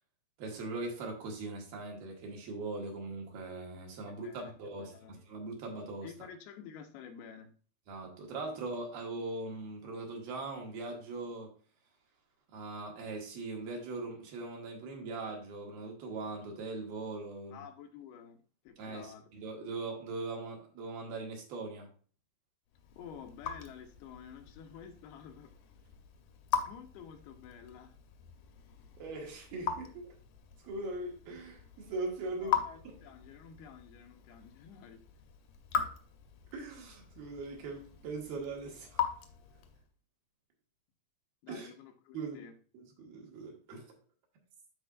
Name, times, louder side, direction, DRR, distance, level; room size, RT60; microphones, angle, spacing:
voice 1, 0.4-6.1 7.9-11.5 12.5-17.6 18.8-21.9 29.0-30.2 30.6-32.6 32.8-32.9 36.5-39.1 41.5-41.7 42.1-42.4 42.7-43.9, right 3 dB, 70° right, 3.4 m, -40 dB
voice 2, 4.0-4.5 4.8-5.2 6.0-7.5 17.5-19.3 22.9-25.5 26.7-28.0 32.3-35.0 41.4-42.6, left 7 dB, 85° left, 2.9 m, -50 dB
Raindrop / Drip, 22.7-39.9, left 8 dB, 70° left, 2.1 m, -40 dB
12.5 x 4.4 x 2.4 m
omnidirectional pair, 4.5 m